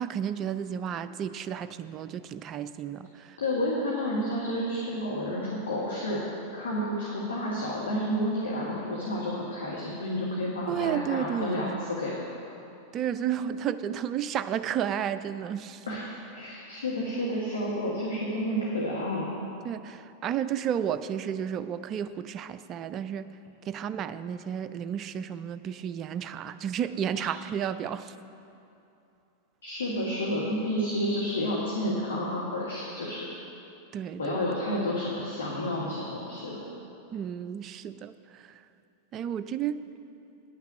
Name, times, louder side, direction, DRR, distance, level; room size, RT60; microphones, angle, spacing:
voice 1, 0.0-3.4 10.7-11.8 12.9-15.9 19.6-23.3 23.7-28.1 33.9-34.4 37.1-38.6 39.1-39.8, right 9 dB, 30° right, 12 dB, 0.4 m, -32 dB
voice 2, 3.4-6.2 6.5-12.3 15.9-19.3 29.6-33.3 34.2-36.6, left 1 dB, 65° left, -4 dB, 1.5 m, -30 dB
9.7 x 5.8 x 8.4 m, 2.8 s
figure-of-eight pair, 90°, 0 cm